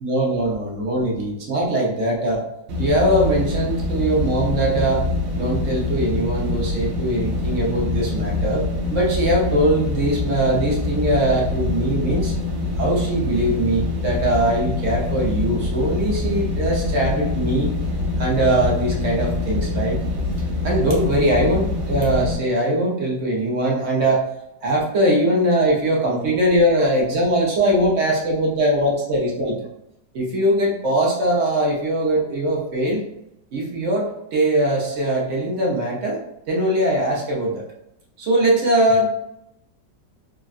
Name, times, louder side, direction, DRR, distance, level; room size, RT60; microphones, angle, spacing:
voice 1, 0.0-2.4 2.8-8.6 8.9-12.3 12.8-17.7 18.2-20.0 20.6-24.2 24.6-29.6 30.1-33.0 33.5-36.2 36.5-37.7 38.2-39.1, right 1 dB, 55° right, -3 dB, 0.9 m, -21 dB
sound 1, 2.7-22.3, left 2 dB, 80° right, 1.3 m, -25 dB
3.6 x 2.1 x 2.4 m, 0.82 s
omnidirectional pair, 2.0 m